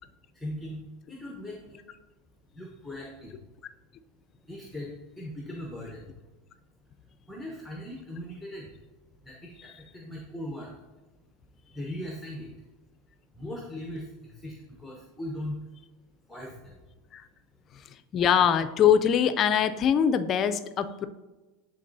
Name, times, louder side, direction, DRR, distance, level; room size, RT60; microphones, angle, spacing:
voice 1, 0.3-0.8 1.1-1.8 2.5-3.4 4.4-6.1 7.0-8.7 9.2-10.8 11.6-12.6 13.3-15.7 16.3-16.8, left 1 dB, ahead, -1 dB, 0.9 m, -39 dB
voice 2, 18.1-21.1, left 8 dB, 35° left, 11 dB, 0.4 m, -23 dB
10.5 x 3.9 x 2.7 m, 1.2 s
supercardioid pair, 120°, 0 cm